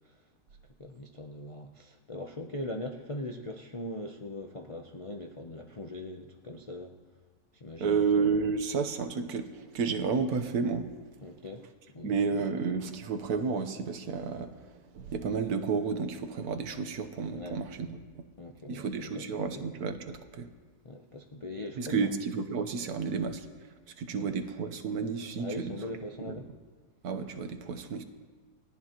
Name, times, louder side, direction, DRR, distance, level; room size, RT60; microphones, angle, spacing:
voice 1, 0.8-7.0 7.5-8.1 11.2-11.6 11.9-12.1 12.4-12.5 17.3-17.6 18.4-19.6 20.8-22.1 22.9-23.1 24.2-24.3 25.4-26.5, left 1 dB, 45° left, 3 dB, 0.4 m, -41 dB
voice 2, 7.8-10.9 12.0-18.0 18.7-20.5 21.8-25.8 26.2-26.3 27.0-28.0, right 5 dB, 75° right, 8 dB, 1.4 m, -31 dB
29.5 x 10.5 x 3.0 m, 1.5 s
omnidirectional pair, 1.7 m